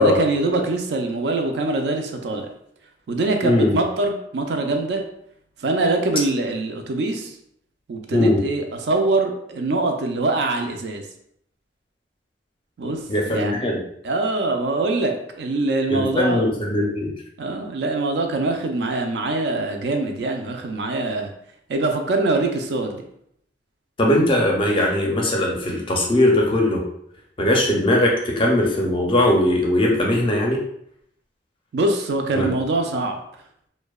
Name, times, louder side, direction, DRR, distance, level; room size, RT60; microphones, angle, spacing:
voice 1, 0.0-2.5 3.1-5.0 5.6-7.3 7.9-11.0 12.8-13.5 14.0-16.5 17.4-21.3 21.7-23.0 31.7-33.1, right 2 dB, 70° right, 4 dB, 0.4 m, -23 dB
voice 2, 3.4-3.7 8.1-8.4 13.1-13.8 15.9-17.1 24.0-26.8 27.4-30.6 32.4-32.5, left 1 dB, 30° left, 0 dB, 0.4 m, -19 dB
2.6 x 2.1 x 2.2 m, 0.71 s
head